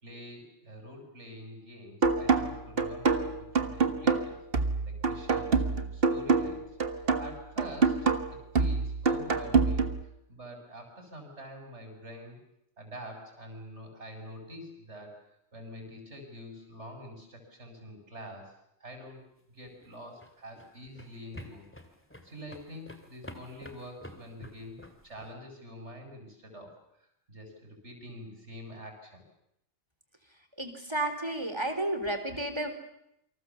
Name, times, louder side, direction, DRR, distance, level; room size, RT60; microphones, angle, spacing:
voice 1, 0.0-4.4 4.9-6.6 6.9-8.0 8.3-9.9 10.3-12.4 12.8-15.2 15.5-18.5 18.8-19.2 19.5-21.6 22.2-29.2, equal, 75° right, 4 dB, 7.2 m, -46 dB
sound 1, 2.0-10.0, right 4 dB, 55° right, 1.8 m, -27 dB
sound 2, 19.7-25.3, left 1 dB, 10° left, 2.7 m, -49 dB
voice 2, 30.6-32.7, right 1 dB, 25° right, 7 dB, 3.8 m, -32 dB
28.5 x 25.5 x 7.2 m, 0.78 s
omnidirectional pair, 1.2 m